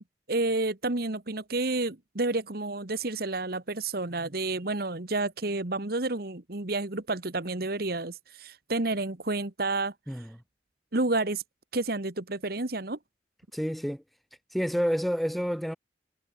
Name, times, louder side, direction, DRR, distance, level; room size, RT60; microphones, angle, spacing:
voice 1, 0.3-9.9 10.9-11.4 11.7-13.0, right 2 dB, 55° right, 1.6 m, -30 dB
voice 2, 13.5-14.0 14.5-15.8, equal, ahead, 3.5 m, -29 dB
head